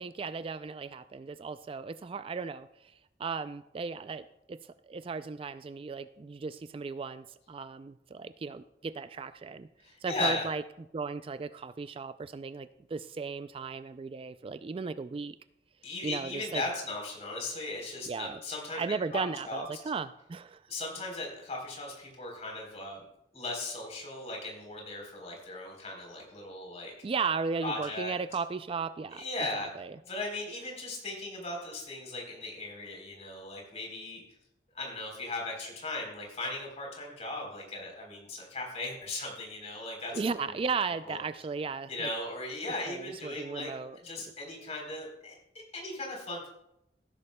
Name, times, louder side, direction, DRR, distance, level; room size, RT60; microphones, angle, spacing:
voice 1, 0.0-2.9 3.2-4.6 4.9-9.7 10.0-10.6 10.9-15.4 16.0-16.6 18.1-18.4 18.7-20.6 27.0-29.2 29.5-30.0 40.1-42.1 42.9-44.0, right 5 dB, 30° right, 13 dB, 0.3 m, -36 dB
voice 2, 9.8-10.5 15.8-19.2 19.5-19.6 20.7-23.0 23.3-26.9 27.6-28.1 29.1-29.7 30.0-34.2 34.7-40.5 41.0-41.2 41.9-45.3 45.7-46.5, left 2 dB, 40° left, 0 dB, 3.6 m, -37 dB
17.5 x 10.5 x 2.2 m, 0.82 s
head